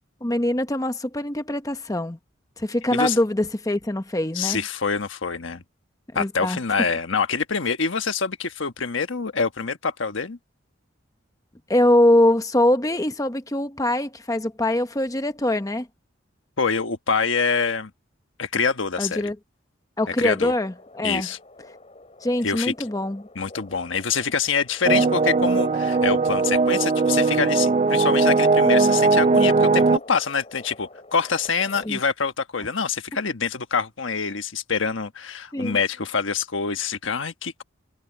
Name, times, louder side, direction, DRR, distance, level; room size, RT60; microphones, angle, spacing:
voice 1, 0.2-2.2 2.6-4.6 6.1-6.6 11.7-15.9 19.0-19.4 20.0-21.3 22.2-23.3 31.8-32.0 35.5-35.8, left 1 dB, 20° left, 0.9 m, -23 dB
voice 2, 4.3-5.6 6.1-10.4 16.6-17.9 18.4-19.2 20.2-20.5 21.0-21.4 22.4-22.7 23.3-37.6, left 5 dB, 80° left, 1.3 m, -25 dB
sound 1, 20.6-31.9, left 2 dB, 35° left, 6.1 m, -46 dB
sound 2, 24.8-30.0, right 3 dB, 30° right, 0.3 m, -19 dB
head